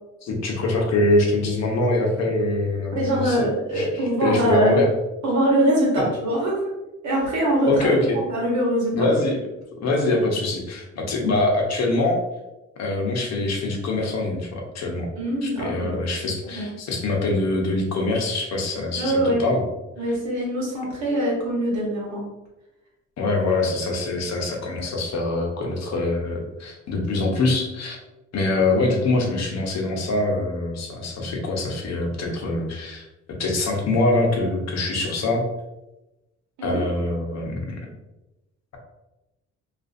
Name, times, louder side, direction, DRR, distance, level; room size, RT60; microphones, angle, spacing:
voice 1, 0.2-3.5 3.7-3.9 4.2-4.9 7.6-8.2 8.9-9.4 9.8-12.2 12.8-15.1 15.4-19.6 23.2-28.0 28.3-33.0 33.4-35.4 36.6-37.7, left 2 dB, 60° left, 0 dB, 0.7 m, -24 dB
voice 2, 2.9-4.8 5.2-6.7 7.0-7.7 8.3-9.1 15.2-16.0 16.5-16.7 18.9-19.4 20.0-22.2 36.6-36.8, right 1 dB, 70° right, -3 dB, 1.1 m, -23 dB
2.5 x 2.4 x 2.5 m, 0.97 s
cardioid pair, 90°, 30 cm